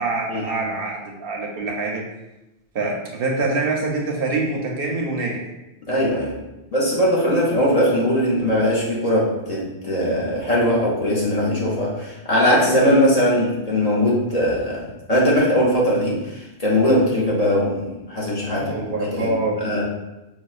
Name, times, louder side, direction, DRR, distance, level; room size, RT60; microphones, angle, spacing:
voice 1, 0.0-2.0 2.7-5.4 18.5-19.8, right 3 dB, 65° right, 0 dB, 0.7 m, -25 dB
voice 2, 5.9-6.3 6.7-18.7 19.0-19.3 19.6-19.8, equal, 45° left, -5 dB, 0.7 m, -20 dB
4.9 x 2.0 x 2.3 m, 0.97 s
omnidirectional pair, 1.1 m